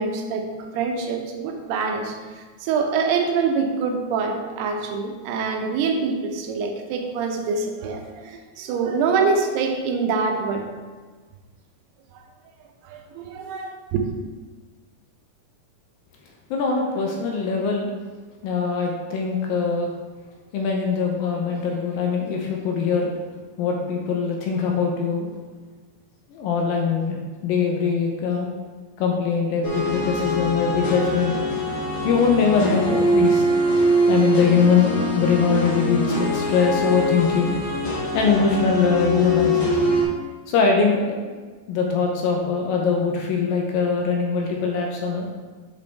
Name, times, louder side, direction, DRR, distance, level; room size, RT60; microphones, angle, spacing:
voice 1, 0.0-10.7 12.8-14.1, right 5 dB, 85° right, 4 dB, 2.8 m, -25 dB
voice 2, 16.5-17.9 18.4-19.9 20.5-23.1 23.6-25.3 26.3-28.5 29.0-31.4 31.8-33.8 34.1-37.5 38.1-39.8 40.5-41.4 41.7-45.3, left 5 dB, 80° left, 1 dB, 2.2 m, -22 dB
sound 1, 29.6-40.0, equal, 65° left, 1.8 m, -23 dB
8.3 x 5.3 x 3.4 m, 1.4 s
omnidirectional pair, 4.5 m